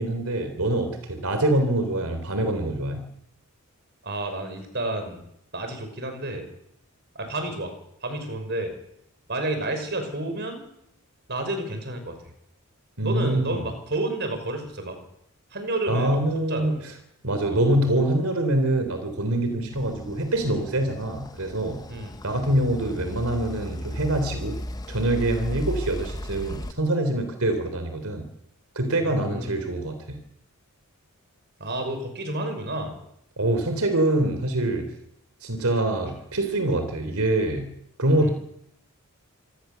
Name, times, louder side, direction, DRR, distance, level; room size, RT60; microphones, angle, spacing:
voice 1, 0.0-3.1 13.0-13.6 15.9-16.9 17.2-21.8 22.2-24.6 24.9-28.3 28.8-30.2 33.4-34.9 35.4-38.3, right 1 dB, 75° right, 8 dB, 3.5 m, -25 dB
voice 2, 4.0-5.2 5.5-6.5 7.1-7.7 8.0-8.7 9.3-10.7 11.3-12.2 13.0-15.0 15.5-16.2 16.5-16.8 17.4-17.6 21.9-22.1 29.0-29.7 31.6-33.0 38.2-38.3, right 1 dB, 50° right, 6 dB, 5.7 m, -30 dB
sound 1, 19.7-26.7, left 1 dB, 15° left, 0.8 m, -36 dB
26.5 x 19.0 x 6.9 m, 0.74 s
head